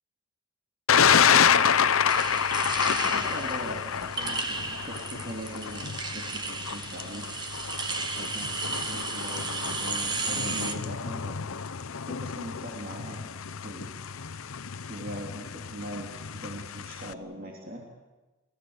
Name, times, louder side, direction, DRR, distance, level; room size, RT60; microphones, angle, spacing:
Thunder, 0.9-17.1, left 7 dB, 85° left, 0.8 m, -28 dB
voice 1, 0.9-1.8 3.0-7.3 8.1-11.4 12.1-13.3 13.6-13.9 14.9-17.8, right 1 dB, 40° right, 0 dB, 3.1 m, -41 dB
sound 1, 2.1-10.7, right 4 dB, 20° right, 1.3 m, -34 dB
29.0 x 17.5 x 8.1 m, 1.2 s
head